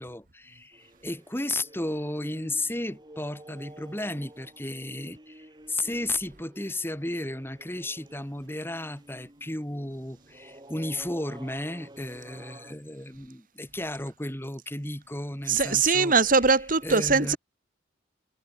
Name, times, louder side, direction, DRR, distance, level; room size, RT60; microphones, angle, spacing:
voice 1, 0.0-16.1 16.8-17.4, left 1 dB, 10° left, 4.2 m, -34 dB
sound 1, 0.7-12.8, right 1 dB, 25° right, 7.9 m, -51 dB
voice 2, 15.5-17.4, right 4 dB, 45° right, 1.8 m, -21 dB
head